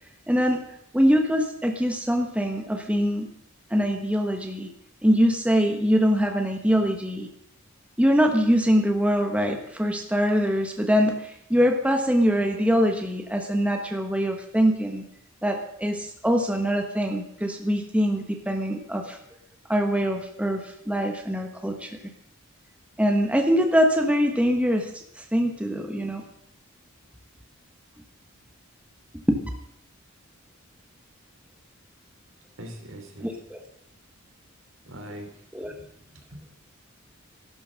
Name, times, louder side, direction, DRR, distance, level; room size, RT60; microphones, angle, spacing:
voice 1, 0.3-0.6 0.9-3.3 3.7-4.7 5.0-7.3 8.0-15.0 15.4-19.2 19.7-21.9 23.0-26.2 29.3-29.4 33.2-33.6 35.5-35.7, equal, 5° right, 3 dB, 1.2 m, -23 dB
voice 2, 32.6-33.3 34.9-35.3 35.6-35.9 36.3-36.4, equal, 70° right, 4 dB, 3.3 m, -41 dB
14.5 x 12.0 x 6.4 m, 0.74 s
head